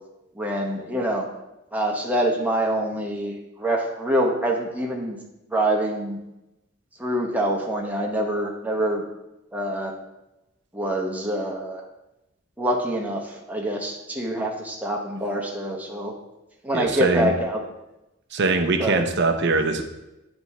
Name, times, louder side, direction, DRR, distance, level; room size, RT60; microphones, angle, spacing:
voice 1, 0.3-1.3 1.7-3.3 3.6-5.2 5.5-6.2 7.0-9.0 9.5-10.0 10.7-11.8 12.6-16.1 16.6-17.6 18.8-19.0, right 1 dB, 10° right, 0 dB, 0.9 m, -25 dB
voice 2, 16.7-17.3 18.3-19.8, right 3 dB, 55° right, 5 dB, 0.7 m, -22 dB
9.4 x 3.5 x 4.2 m, 0.94 s
head